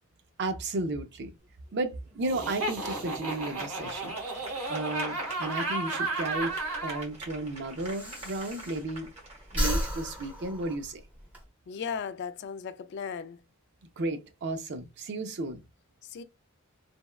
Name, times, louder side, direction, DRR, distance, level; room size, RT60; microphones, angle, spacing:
voice 1, 0.4-1.3 1.7-4.2 4.7-6.5 6.8-9.1 9.5-11.0 14.0-15.6, right 2 dB, 55° right, 0.5 m, -33 dB
sound 1, 1.4-11.5, right 2 dB, 30° right, 1.2 m, -47 dB
Laughter, 2.2-7.0, right 2 dB, 80° right, 1.2 m, -33 dB
Breathing, 6.4-9.1 9.4-11.4, equal, 10° right, 0.8 m, -34 dB
voice 2, 11.7-13.4 16.0-16.2, left 6 dB, 55° left, 0.3 m, -36 dB
3.4 x 2.1 x 2.2 m
head